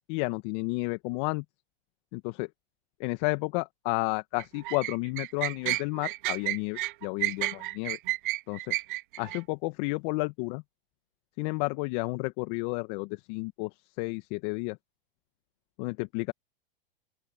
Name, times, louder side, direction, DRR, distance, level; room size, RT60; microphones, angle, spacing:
voice 1, 0.1-1.4 2.1-2.5 3.0-8.0 8.5-8.7 9.2-10.6 11.4-13.7 14.0-14.8 15.8-16.3, left 27 dB, 50° left, 1.5 m, -31 dB
sound 1, 4.4-9.4, right 19 dB, 60° right, 0.6 m, -31 dB
open air
hypercardioid pair, 110°, 29 cm